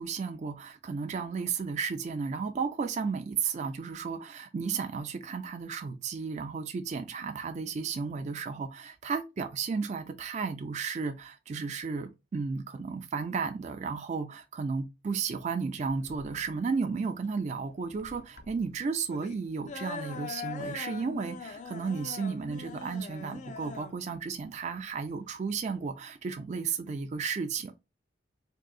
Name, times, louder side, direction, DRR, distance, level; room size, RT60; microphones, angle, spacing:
voice 1, 0.0-27.7, right 5 dB, 40° right, 0.3 m, -33 dB
sound 1, 15.9-25.9, left 5 dB, 40° left, 0.4 m, -43 dB
3.7 x 2.6 x 2.3 m
head